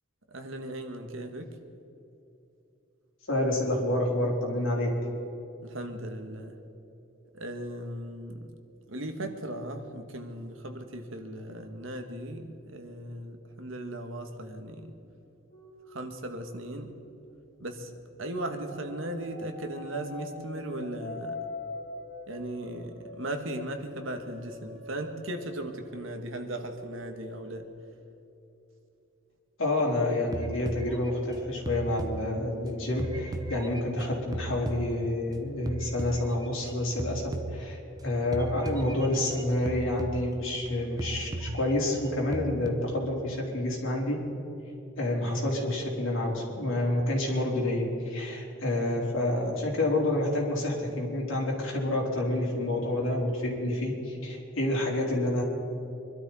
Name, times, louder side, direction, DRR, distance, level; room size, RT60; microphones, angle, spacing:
voice 1, 0.3-1.5 5.6-6.6 7.3-8.5 8.9-14.9 15.9-16.9 17.6-17.9 18.2-21.4 22.3-27.7, right 1 dB, 70° right, 5 dB, 1.6 m, -37 dB
voice 2, 3.3-4.9 29.6-44.2 45.0-55.4, left 1 dB, 70° left, -3 dB, 4.0 m, -28 dB
sound 1, 15.5-17.6 18.2-25.9 26.2-27.6, left 2 dB, 30° left, 3.4 m, -44 dB
sound 2, 30.3-32.7 33.0-35.3 35.7-36.7 37.0-38.0 38.3-40.7 41.0-42.7, right 1 dB, 20° right, 0.9 m, -37 dB
24.5 x 12.5 x 4.3 m, 2.9 s
head